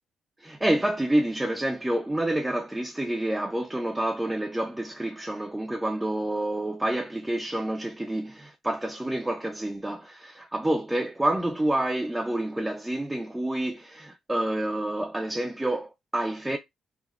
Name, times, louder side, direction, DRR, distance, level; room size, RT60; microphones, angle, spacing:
voice 1, 0.4-16.6, right 1 dB, 10° right, 0.4 m, -28 dB
3.3 x 2.0 x 2.3 m
cardioid pair, 90°, 0 cm